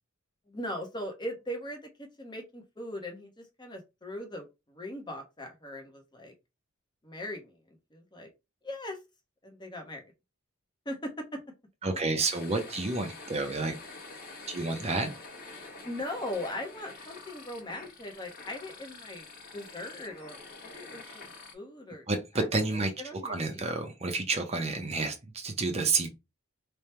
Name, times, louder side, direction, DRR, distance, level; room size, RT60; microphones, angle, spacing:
voice 1, 0.5-6.3 7.0-8.3 8.6-9.0 9.4-10.1 10.8-11.4 15.8-19.3 19.5-22.1 22.3-23.6, left 1 dB, 20° left, 0.9 m, -40 dB
voice 2, 11.8-13.7 14.5-15.1 21.1-21.2 22.1-22.9 23.2-26.1, right 3 dB, 30° right, 0.7 m, -30 dB
sound 1, 12.3-21.5, left 3 dB, 45° left, 1.1 m, -47 dB
3.4 x 2.3 x 4.3 m
head